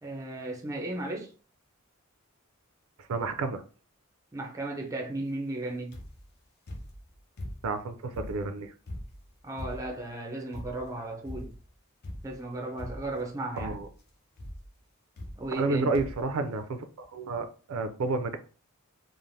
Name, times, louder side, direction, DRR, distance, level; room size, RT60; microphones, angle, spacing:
voice 1, 0.0-1.3 4.3-6.0 9.4-11.5 12.2-13.8 15.4-15.9, right 2 dB, 15° right, 0.4 m, -35 dB
voice 2, 3.0-3.6 7.6-8.7 13.6-13.9 15.6-18.4, right 3 dB, 80° right, 0.4 m, -31 dB
sound 1, 5.9-6.3 6.7-7.8 8.1-10.1 10.5-11.0 11.2-11.7 12.0-12.4 12.8-13.3 13.6-14.0 14.4-14.7 15.2-15.7 15.9-16.3 17.0-17.1 17.3-17.4, left 1 dB, 50° left, 0.6 m, -41 dB
3.1 x 2.0 x 2.6 m
head